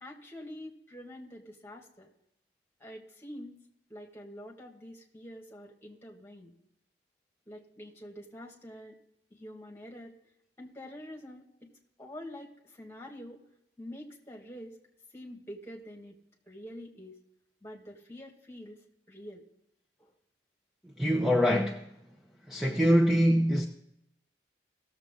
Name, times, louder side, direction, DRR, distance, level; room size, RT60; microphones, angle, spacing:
voice 1, 0.0-2.1 2.8-3.5 3.9-6.5 7.5-9.0 9.3-10.2 10.6-11.7 12.0-13.4 13.8-14.8 15.1-16.2 16.5-17.1 17.6-18.8 19.1-19.4 20.0-20.1, equal, 15° left, 1.9 m, -46 dB
voice 2, 21.0-21.8 22.5-23.7, equal, ahead, 0.7 m, -24 dB
18.0 x 7.3 x 3.8 m
head